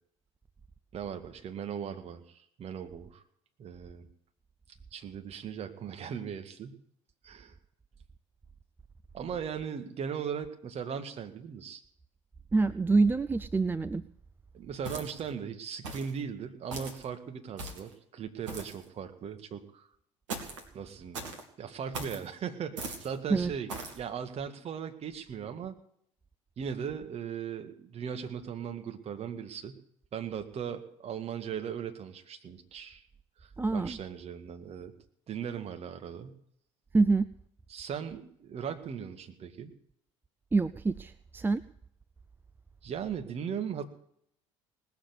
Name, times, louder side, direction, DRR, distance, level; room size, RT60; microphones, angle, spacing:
voice 1, 0.9-3.2 3.6-4.1 4.9-6.8 7.2-7.5 9.1-11.8 14.5-19.9 20.7-21.2 21.6-25.7 26.6-29.8 30.1-33.0 33.4-34.9 35.3-36.4 37.7-39.7 42.8-43.9, right 7 dB, 40° right, 7 dB, 2.0 m, -38 dB
voice 2, 12.5-14.0 23.3-23.5 33.6-34.0 36.9-37.2 40.5-41.6, right 3 dB, 10° right, 13 dB, 0.5 m, -26 dB
sound 1, 14.8-15.3 15.8-16.2 16.7-17.0 17.6-17.9 18.5-18.8 20.3-20.7 21.1-21.4 21.9-22.2 22.8-23.1 23.7-24.0, right 3 dB, 70° right, 2.4 m, -39 dB
19.5 x 7.3 x 8.3 m, 0.68 s
figure-of-eight pair, 60°, 16 cm